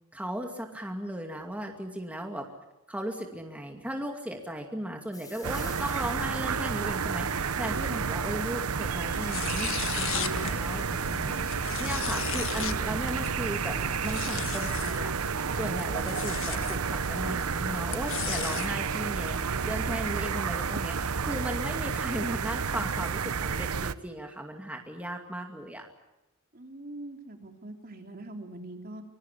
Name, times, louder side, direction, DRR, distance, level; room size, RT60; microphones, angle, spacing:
voice 1, 0.1-2.5 2.9-9.7 10.0-13.8 14.0-25.9, equal, 5° right, 2 dB, 2.4 m, -36 dB
sound 1, 5.1-18.3 19.2-19.6 20.2-20.3 20.5-20.6 20.9-22.2, left 4 dB, 20° left, 4.0 m, -56 dB
sound 2, 5.4-23.9, right 5 dB, 85° right, 0.9 m, -31 dB
sound 3, 9.0-18.7, left 7 dB, 65° left, 1.5 m, -37 dB
voice 2, 26.5-29.0, right 1 dB, 45° right, 4 dB, 3.3 m, -43 dB
25.0 x 22.0 x 8.5 m, 0.92 s
head